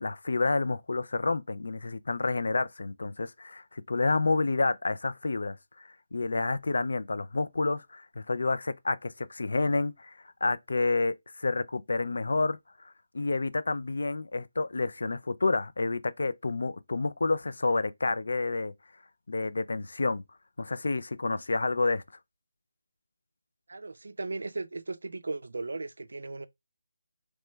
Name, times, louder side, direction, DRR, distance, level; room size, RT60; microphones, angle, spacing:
voice 1, 0.0-5.6 6.1-10.1 10.4-12.6 13.1-18.7 19.3-20.2 20.6-22.0, left 3 dB, 70° left, 0.3 m, -29 dB
voice 2, 23.7-26.5, right 3 dB, 75° right, 0.4 m, -36 dB
3.0 x 2.2 x 3.1 m
figure-of-eight pair, 170°, 0 cm